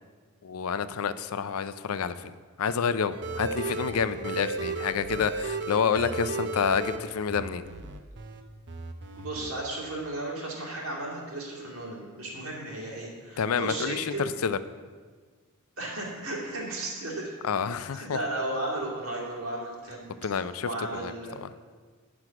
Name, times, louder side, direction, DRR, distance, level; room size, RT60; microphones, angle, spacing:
voice 1, 0.4-7.6 13.4-14.6 17.4-18.2 20.2-21.5, left 6 dB, 70° left, 14 dB, 0.5 m, -29 dB
sound 1, 3.1-8.4 8.7-9.5, right 3 dB, 55° right, 0.7 m, -34 dB
voice 2, 9.1-14.3 15.8-17.3 17.9-20.1 20.3-21.3, right 2 dB, 70° right, -4 dB, 2.7 m, -34 dB
9.8 x 6.1 x 5.9 m, 1.5 s
head